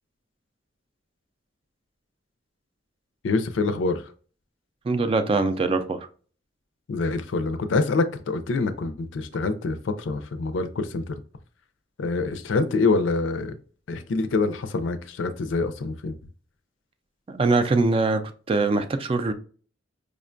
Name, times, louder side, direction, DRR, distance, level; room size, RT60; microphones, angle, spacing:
voice 1, 3.2-4.0 6.9-11.2 12.0-13.6 13.9-16.1, left 3 dB, 85° left, 0.4 m, -25 dB
voice 2, 4.8-6.0 17.3-18.2 18.5-19.3, right 3 dB, 30° right, 0.3 m, -22 dB
5.0 x 2.2 x 2.5 m
head